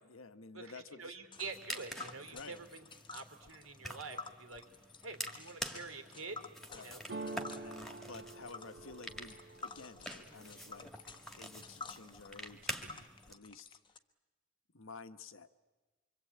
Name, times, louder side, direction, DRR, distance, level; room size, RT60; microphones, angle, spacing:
voice 1, 0.0-1.2 2.3-2.6 6.7-11.0 11.4-13.7 14.7-15.5, left 4 dB, 65° left, 10 dB, 1.3 m, -52 dB
voice 2, 0.5-2.8 3.1-4.6 5.0-6.4 6.7-7.0, right 4 dB, 75° right, 7 dB, 3.5 m, -46 dB
Tick, 1.3-14.0, left 4 dB, 20° left, 1.0 m, -51 dB
sound 1, 1.4-13.3, equal, ahead, 2.0 m, -47 dB
sound 2, 7.1-11.0 11.4-12.0 12.3-13.1, right 3 dB, 55° right, 1.8 m, -47 dB
25.5 x 25.0 x 8.7 m, 1.2 s
head